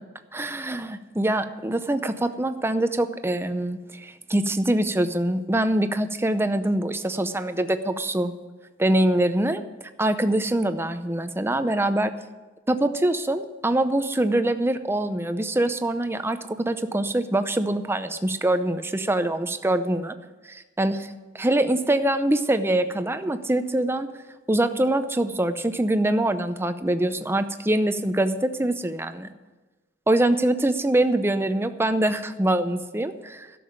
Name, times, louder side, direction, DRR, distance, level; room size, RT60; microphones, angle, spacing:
voice 1, 0.3-8.3 8.8-9.6 10.0-12.1 12.7-20.1 20.5-24.1 24.5-29.3 30.1-33.5, right 1 dB, 15° right, 10 dB, 0.6 m, -24 dB
12.5 x 7.0 x 8.7 m, 1.2 s
head